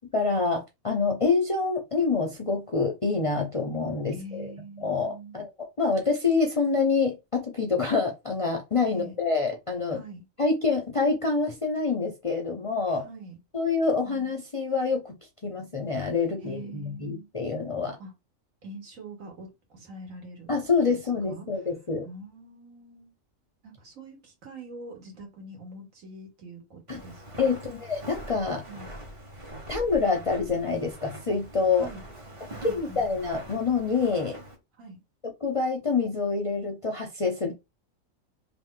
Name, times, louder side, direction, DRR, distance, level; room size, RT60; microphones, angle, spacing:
voice 1, 0.1-4.5 4.8-5.5 5.8-10.0 10.4-13.0 13.5-15.1 15.4-18.0 20.5-22.0 26.9-27.0 27.4-28.6 29.7-31.9 32.6-34.4 35.4-37.5, left 4 dB, 40° left, 0.5 m, -26 dB
voice 2, 4.1-5.4 8.9-9.2 9.9-10.2 12.9-13.4 14.0-14.4 16.4-17.3 18.0-18.1 18.6-20.5 20.9-21.0 21.3-21.5 22.0-23.1 23.6-27.6 28.7-28.9 31.8-32.0 32.5-33.0 34.8-35.0, right 2 dB, 75° right, 1.7 m, -44 dB
Walk footsteps, 26.9-34.6, right 1 dB, 30° right, 0.8 m, -43 dB
3.1 x 2.5 x 3.6 m
omnidirectional pair, 1.4 m